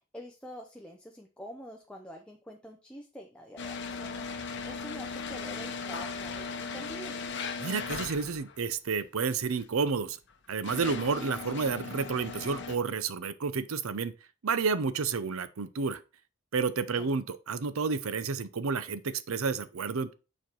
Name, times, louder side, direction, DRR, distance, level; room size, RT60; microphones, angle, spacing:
voice 1, 0.0-7.2 16.9-17.1, equal, 5° left, 0.6 m, -46 dB
sound 1, 3.6-8.6 9.5-9.6 10.3-12.8, left 5 dB, 55° left, 0.9 m, -38 dB
voice 2, 7.6-10.2 10.5-14.1 14.4-16.0 16.5-20.1, right 5 dB, 80° right, 0.6 m, -30 dB
7.0 x 4.5 x 4.5 m
head